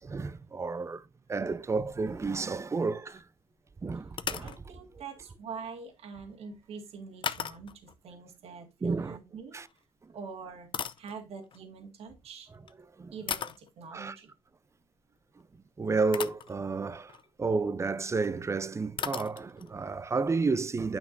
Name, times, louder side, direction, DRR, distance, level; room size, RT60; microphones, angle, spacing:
voice 1, 0.0-3.3 3.8-4.6 8.8-9.2 9.5-9.7 10.0-10.2 13.0-13.1 13.9-14.2 15.8-21.0, right 4 dB, 25° right, 0.6 m, -31 dB
sound 1, 1.6-2.8 3.1-3.2 4.1-4.6 7.2-7.9 9.6-9.8 10.4-11.6 12.5-12.7 13.3-13.7 15.5-15.6 16.1-16.5 17.0-17.3 18.2-18.3 18.5-18.6 19.0-19.7, left 8 dB, 45° left, 0.6 m, -37 dB
voice 2, 4.4-9.6 10.1-10.7 11.0-12.5 13.1-14.3, right 5 dB, 65° right, 2.0 m, -44 dB
9.6 x 6.0 x 2.6 m
supercardioid pair, 65°, 11 cm